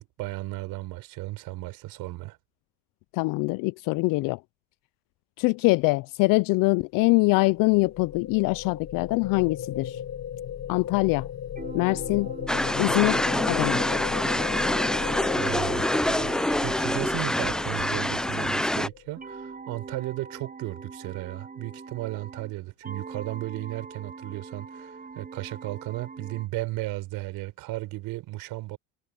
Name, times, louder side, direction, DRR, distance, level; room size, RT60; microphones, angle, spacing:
voice 1, 0.0-2.4 15.1-16.3 16.6-28.8, right 18 dB, 70° right, 4.5 m, -35 dB
voice 2, 3.1-4.4 5.4-10.0 10.7-11.3 11.7-12.3 12.8-13.8, left 25 dB, 65° left, 0.5 m, -23 dB
sound 1, 7.1-19.3, left 9 dB, 45° left, 2.2 m, -36 dB
sound 2, 11.6-18.8 19.2-22.5 22.8-26.5, right 4 dB, 25° right, 7.5 m, -43 dB
sound 3, 12.5-18.9, left 1 dB, ahead, 0.4 m, -26 dB
supercardioid pair, 105°, 36 cm